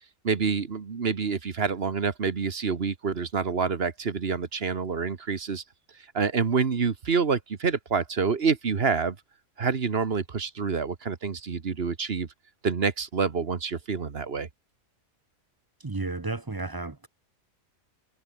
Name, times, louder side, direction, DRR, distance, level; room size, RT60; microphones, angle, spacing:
voice 1, 0.2-5.6 6.1-9.2 9.6-12.3 12.6-14.5, right 5 dB, 45° right, 1.5 m, -27 dB
voice 2, 15.8-17.1, right 3 dB, 25° right, 0.6 m, -32 dB
omnidirectional pair, 1.4 m